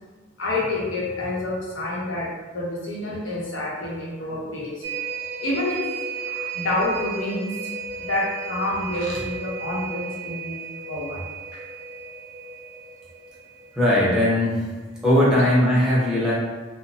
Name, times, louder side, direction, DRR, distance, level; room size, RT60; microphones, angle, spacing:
voice 1, 0.4-4.8 5.4-5.9 6.1-7.7 8.0-10.6 10.9-11.2 11.5-11.6, left 2 dB, 65° left, -5 dB, 0.8 m, -28 dB
sound 1, 4.8-14.6 15.0-15.1, right 5 dB, 75° right, 0.5 m, -34 dB
voice 2, 13.7-14.7 15.0-16.3, left 1 dB, 5° right, -8 dB, 0.6 m, -19 dB
2.9 x 2.0 x 2.6 m, 1.3 s
head